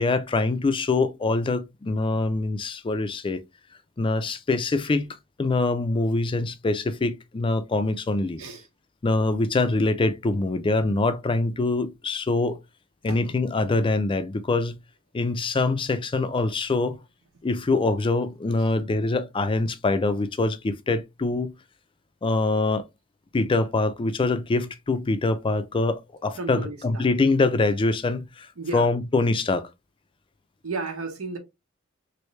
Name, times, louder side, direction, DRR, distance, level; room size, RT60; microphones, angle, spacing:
voice 1, 0.0-3.4 4.0-5.1 5.4-8.4 9.0-12.6 13.0-14.8 15.1-17.0 17.4-21.5 22.2-22.9 23.3-29.7, left 3 dB, 25° left, 0.4 m, -24 dB
voice 2, 26.3-27.1 28.6-28.9 30.6-31.4, right 3 dB, 85° right, 1.0 m, -33 dB
3.1 x 2.6 x 3.1 m
head